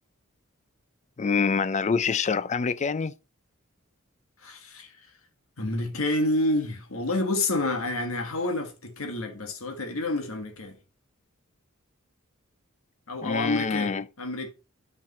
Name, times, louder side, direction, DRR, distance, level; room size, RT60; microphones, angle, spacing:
voice 1, 1.2-3.1 13.2-14.1, left 5 dB, 35° left, 0.4 m, -26 dB
voice 2, 4.4-4.9 5.6-10.8 13.1-14.5, left 2 dB, 70° left, 1.6 m, -29 dB
9.5 x 5.2 x 4.1 m
head